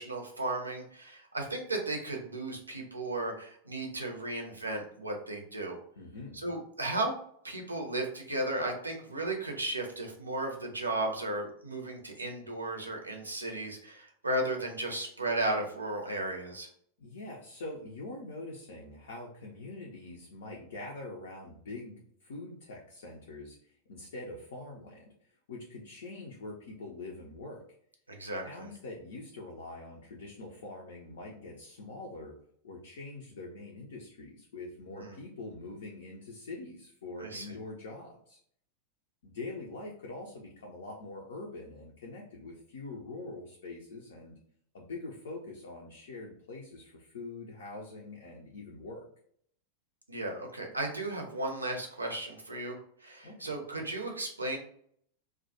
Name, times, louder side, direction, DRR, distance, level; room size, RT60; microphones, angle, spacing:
voice 1, 0.0-5.8 6.4-7.1 7.4-16.7 28.1-28.7 35.0-35.2 37.2-37.6 50.1-54.6, right 2 dB, 80° right, 2 dB, 0.5 m, -35 dB
voice 2, 6.0-6.4 17.0-27.6 28.4-32.3 32.6-38.4 39.2-44.4 44.7-49.0 53.2-53.5, left 2 dB, 60° left, -1 dB, 0.4 m, -44 dB
2.2 x 2.1 x 2.7 m, 0.64 s
figure-of-eight pair, 90°, 0 cm